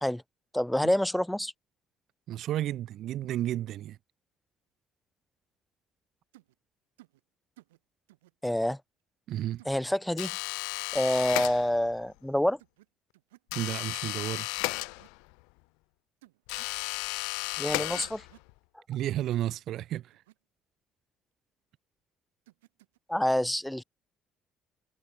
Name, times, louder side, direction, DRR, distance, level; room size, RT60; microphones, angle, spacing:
voice 1, 0.5-1.5 8.4-8.8 9.6-10.3 10.9-12.6 17.6-18.2 23.1-23.8, left 1 dB, 5° left, 1.2 m, -27 dB
voice 2, 2.3-4.0 9.3-9.6 13.5-14.5 18.9-20.1, right 13 dB, 55° right, 0.6 m, -32 dB
sound 1, 6.3-6.5 7.0-7.2 7.6-7.8 8.1-8.3 9.6-9.8 11.2-11.4 12.6-12.9 13.1-13.5 14.7-15.1 16.2-16.8 17.9-18.5 20.1-20.4 22.5-23.0, right 18 dB, 75° right, 2.5 m, -58 dB
sound 2, 10.2-12.0 13.5-15.4 16.5-18.5, left 33 dB, 70° left, 0.5 m, -34 dB
figure-of-eight pair, 50°, 0 cm